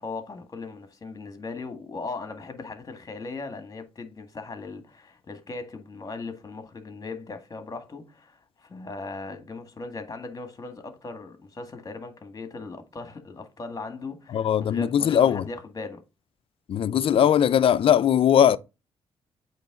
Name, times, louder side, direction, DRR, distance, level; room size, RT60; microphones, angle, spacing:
voice 1, 0.0-16.0, left 3 dB, 35° left, 1.8 m, -38 dB
voice 2, 14.3-15.5 16.7-18.6, left 9 dB, 60° left, 0.5 m, -20 dB
8.3 x 3.2 x 3.8 m
cardioid pair, 70°, 11 cm